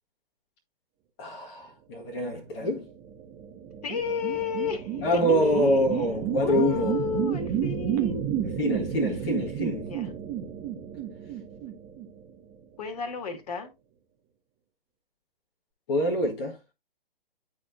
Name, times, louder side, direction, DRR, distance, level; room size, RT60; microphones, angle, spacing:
voice 1, 1.2-2.9 5.0-7.0 8.4-9.9 15.9-16.6, equal, 25° left, 1.6 m, -26 dB
sound 1, 2.8-12.5, right 9 dB, 20° right, 1.2 m, -31 dB
voice 2, 3.8-5.9 6.4-8.3 9.9-10.1 12.8-13.7, left 5 dB, 45° left, 1.9 m, -32 dB
11.0 x 4.2 x 2.6 m
figure-of-eight pair, 125°, 29 cm